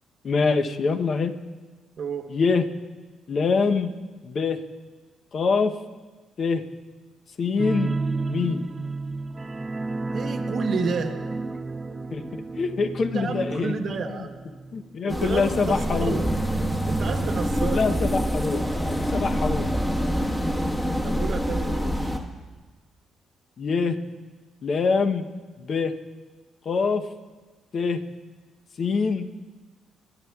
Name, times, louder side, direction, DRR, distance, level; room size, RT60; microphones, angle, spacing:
voice 1, 0.2-1.3 2.3-2.7 3.3-3.9 4.2-4.6 5.3-5.8 6.4-6.6 7.4-7.9 8.3-8.7 12.1-13.7 14.2-14.3 14.7-16.2 17.6-19.7 23.6-24.0 24.6-25.2 25.6-25.9 26.7-27.1 27.7-28.0 28.8-29.3, left 4 dB, 50° left, 7 dB, 0.7 m, -24 dB
voice 2, 2.0-2.3 10.1-11.2 13.1-14.4 15.0-16.4 16.9-17.8 21.0-22.1, right 5 dB, 60° right, 5 dB, 0.9 m, -31 dB
sound 1, 7.6-20.8 21.1-21.3 21.7-21.8, right 3 dB, 25° right, 0.4 m, -32 dB
sound 2, 15.1-22.2, equal, 10° left, 1.2 m, -26 dB
22.5 x 10.5 x 2.3 m, 1.3 s
cardioid pair, 90°, 0 cm